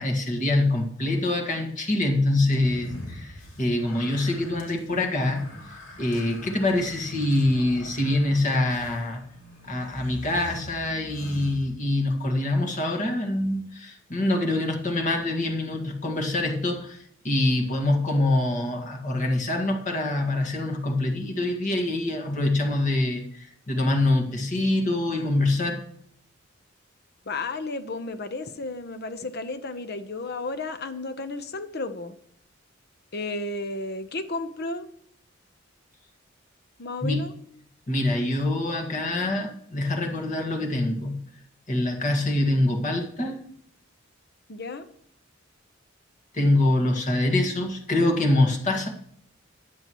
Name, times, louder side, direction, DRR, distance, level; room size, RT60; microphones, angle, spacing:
voice 1, 0.0-5.5 6.0-9.2 9.6-25.8 37.0-37.3 37.9-41.3 41.7-43.4 46.3-48.9, left 2 dB, 40° left, 2 dB, 1.9 m, -25 dB
sound 1, 2.5-12.2, equal, 75° left, 2.6 m, -44 dB
voice 2, 27.3-32.1 33.1-34.9 36.8-37.3 44.5-44.8, left 2 dB, 55° left, 10 dB, 0.9 m, -33 dB
15.0 x 11.0 x 3.1 m, 0.68 s
head